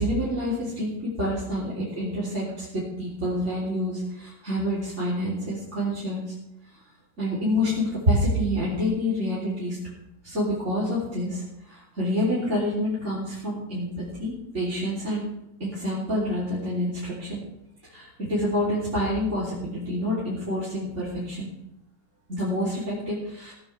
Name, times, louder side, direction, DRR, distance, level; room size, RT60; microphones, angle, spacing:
voice 1, 0.0-2.7 3.0-6.3 7.2-9.8 10.2-13.9 14.2-15.2 15.6-17.4 17.8-21.5 22.3-23.5, equal, 40° right, -7 dB, 3.8 m, -27 dB
17.5 x 13.5 x 3.5 m, 0.82 s
omnidirectional pair, 1.9 m